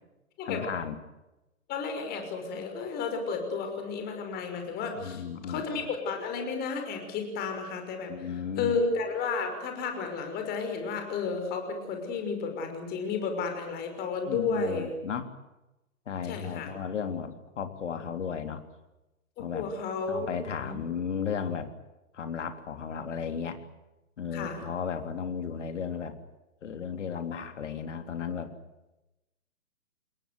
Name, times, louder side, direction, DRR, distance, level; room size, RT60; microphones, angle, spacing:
voice 1, 0.5-1.0 5.0-5.9 8.1-8.8 14.3-15.3 16.1-18.6 19.4-19.7 20.1-21.7 22.1-23.6 24.2-26.2 26.6-28.5, left 7 dB, 55° left, 7 dB, 3.6 m, -34 dB
voice 2, 1.7-8.3 8.6-14.9 16.2-16.7 19.4-20.8 24.3-24.6, left 4 dB, 20° left, 5 dB, 5.9 m, -32 dB
28.0 x 21.5 x 8.0 m, 0.97 s
figure-of-eight pair, 125°, 43 cm